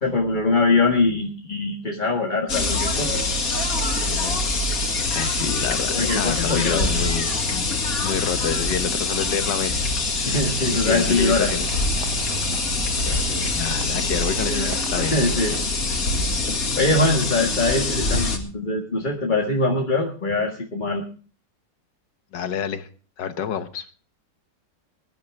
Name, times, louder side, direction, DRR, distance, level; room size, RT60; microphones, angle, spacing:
voice 1, 0.0-3.2 5.9-6.9 10.3-11.5 13.4-13.6 14.4-15.6 15.9-16.0 16.2-16.4 16.8-21.0, left 2 dB, 25° left, 0 dB, 1.8 m, -23 dB
sound 1, 2.5-18.4, left 3 dB, 50° left, 2.5 m, -24 dB
voice 2, 4.1-4.5 4.8-7.7 8.0-9.8 10.1-10.4 10.7-11.7 12.0-12.1 13.0-14.7 14.9-15.1 18.1-18.2 22.3-22.9 23.2-23.9, left 8 dB, 75° left, 10 dB, 1.8 m, -29 dB
sound 2, 10.3-15.7, right 7 dB, 75° right, 1.4 m, -35 dB
21.5 x 11.5 x 3.5 m, 0.40 s
omnidirectional pair, 1.9 m